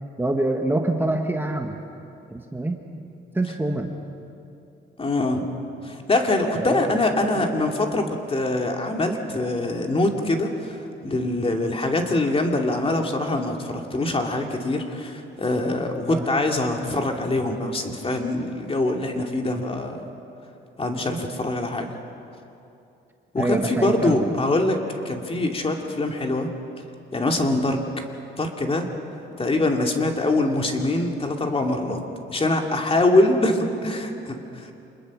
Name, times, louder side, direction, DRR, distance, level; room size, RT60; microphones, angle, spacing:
voice 1, 0.2-1.8 2.3-2.8 3.3-3.9 6.6-7.0 7.4-7.5 16.0-16.2 23.4-24.3, right 2 dB, 10° right, 3 dB, 1.6 m, -25 dB
voice 2, 5.0-5.5 5.8-20.0 20.8-21.9 23.3-24.8 25.0-26.5 27.1-27.8 28.4-28.9 29.4-32.0 32.3-34.7, left 2 dB, 30° left, 2 dB, 2.7 m, -24 dB
27.0 x 21.0 x 6.3 m, 2.7 s
cardioid pair, 90°, 20 cm